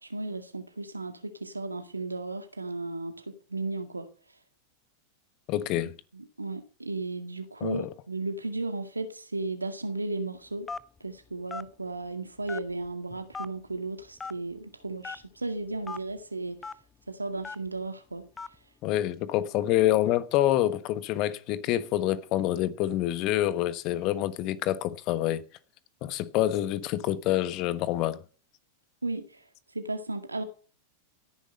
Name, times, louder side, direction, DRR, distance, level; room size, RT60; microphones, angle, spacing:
voice 1, 0.0-4.1 6.1-10.7 11.0-16.6 17.1-18.3 29.0-29.4 29.7-30.5, right 2 dB, 80° right, 2.0 m, -35 dB
voice 2, 5.5-5.9 7.6-7.9 18.8-25.4 26.0-28.2, left 13 dB, 40° left, 1.2 m, -27 dB
Telephone, 10.7-11.0 11.5-11.7 12.5-12.9 13.3-13.5 14.2-14.4 15.0-15.2 15.8-16.0 16.6-16.7 17.4-17.7 18.4-18.6, left 4 dB, 15° left, 0.8 m, -37 dB
17.5 x 10.0 x 5.4 m
figure-of-eight pair, 90°, 0 cm